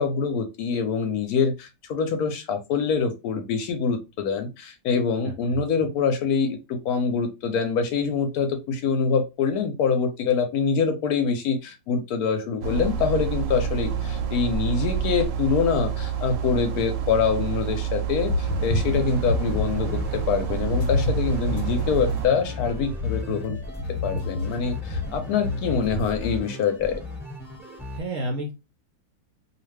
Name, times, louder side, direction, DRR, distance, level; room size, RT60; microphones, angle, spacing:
voice 1, 0.0-23.6 24.0-27.0, left 5 dB, 70° left, 6 dB, 1.0 m, -25 dB
voice 2, 5.2-5.6 25.7-26.0 27.9-28.5, right 1 dB, 65° right, 2 dB, 0.8 m, -32 dB
sound 1, 12.6-22.3, right 8 dB, 85° right, 1.2 m, -28 dB
sound 2, 18.2-19.9 20.7-26.1, left 4 dB, 90° left, 1.3 m, -30 dB
sound 3, 18.4-28.0, left 1 dB, ahead, 1.2 m, -36 dB
2.6 x 2.5 x 3.2 m, 0.26 s
omnidirectional pair, 1.8 m